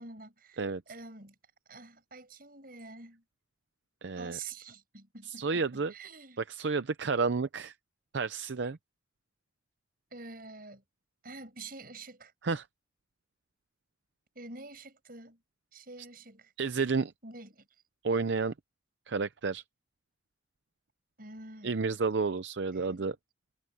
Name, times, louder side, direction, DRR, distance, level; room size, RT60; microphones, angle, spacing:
voice 1, 0.0-0.6 0.9-1.3 1.7-3.2 4.2-6.4 10.1-10.8 11.2-12.3 14.3-15.4 15.7-16.5 17.2-17.6 21.2-21.7 22.7-23.1, right 3 dB, 50° right, 7.8 m, -47 dB
voice 2, 4.0-4.4 5.3-5.9 6.5-7.7 8.1-8.8 12.4-12.7 16.6-17.1 18.0-18.5 19.1-19.6 21.6-23.2, right 4 dB, 75° right, 0.6 m, -31 dB
head